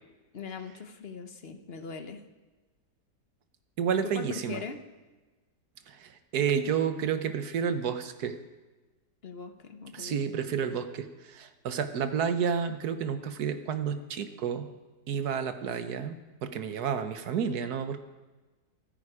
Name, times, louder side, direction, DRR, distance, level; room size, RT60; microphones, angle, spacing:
voice 1, 0.3-2.2 4.0-4.8 9.2-10.2, left 5 dB, 40° left, 8 dB, 1.0 m, -40 dB
voice 2, 3.8-4.6 5.9-8.4 9.9-14.7 15.1-18.0, right 7 dB, 65° right, 9 dB, 1.5 m, -30 dB
24.5 x 9.0 x 4.9 m, 1.2 s
omnidirectional pair, 1.9 m